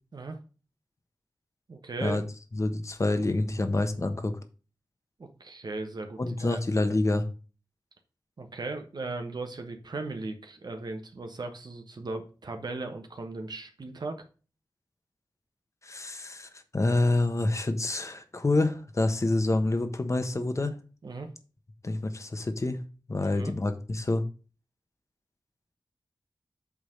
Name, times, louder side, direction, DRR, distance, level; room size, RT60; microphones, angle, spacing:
voice 1, 1.7-2.2 5.2-6.6 8.4-14.2 21.0-21.3 23.2-23.5, right 3 dB, 65° right, 5 dB, 1.2 m, -37 dB
voice 2, 2.5-4.4 6.2-7.3 15.8-20.7 21.8-22.8 23.1-24.2, left 2 dB, 40° left, 8 dB, 1.2 m, -27 dB
8.3 x 3.7 x 6.4 m, 0.36 s
wide cardioid pair, 90°, 8 cm